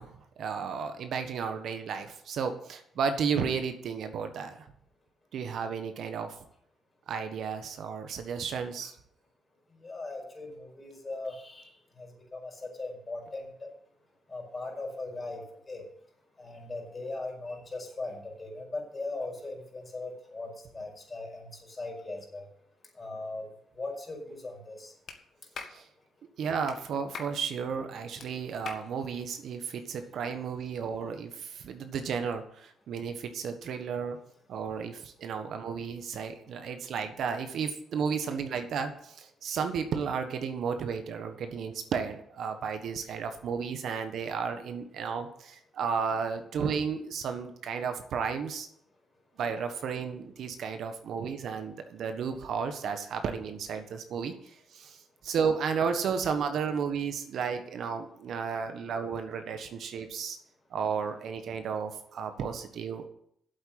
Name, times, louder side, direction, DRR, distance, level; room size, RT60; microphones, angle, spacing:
voice 1, 0.0-4.7 5.3-6.3 7.1-9.0 25.6-25.9 26.4-34.2 34.5-48.7 49.4-60.4 60.7-63.0, right 6 dB, 70° right, 7 dB, 1.3 m, -33 dB
voice 2, 9.8-13.7 14.3-15.8 16.4-22.5 23.0-23.5 23.8-24.9, left 2 dB, 30° left, 0 dB, 5.2 m, -39 dB
Clapping, 25.1-25.2 25.5-25.8 26.7-26.8 27.1-27.4 28.2-28.3 28.7-28.9, left 5 dB, 60° left, 1.7 m, -41 dB
8.0 x 8.0 x 8.8 m, 0.68 s
cardioid pair, 90°, 0 cm